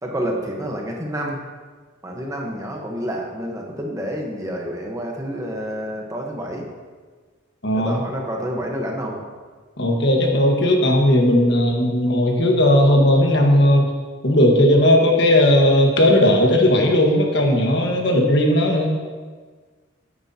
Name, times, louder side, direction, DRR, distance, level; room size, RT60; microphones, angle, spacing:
voice 1, 0.0-1.4 2.0-6.7 7.7-9.3, equal, 15° right, 0 dB, 1.1 m, -28 dB
voice 2, 7.6-8.0 9.8-13.9 14.2-18.9, left 1 dB, 55° left, 1 dB, 1.5 m, -16 dB
13.0 x 9.4 x 2.9 m, 1.5 s
head